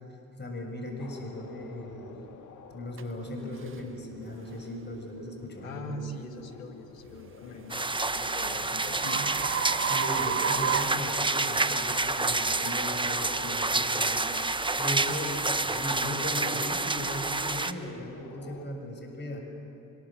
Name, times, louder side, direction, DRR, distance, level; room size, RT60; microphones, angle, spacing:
voice 1, 0.4-2.2 2.7-6.1 9.7-14.2 14.5-19.4, left 1 dB, 25° left, 2 dB, 6.7 m, -38 dB
sound 1, 1.0-18.7, left 6 dB, 50° left, 2.1 m, -50 dB
sound 2, 3.0-3.1 3.7-3.9 4.5-4.7 7.3-11.8, right 8 dB, 30° right, 1.0 m, -33 dB
voice 2, 5.6-9.3, left 1 dB, 90° left, 6 dB, 2.0 m, -42 dB
sound 3, 7.7-17.7, right 3 dB, 10° right, 1.2 m, -28 dB
25.0 x 21.0 x 7.5 m, 2.7 s
hypercardioid pair, 60°, 39 cm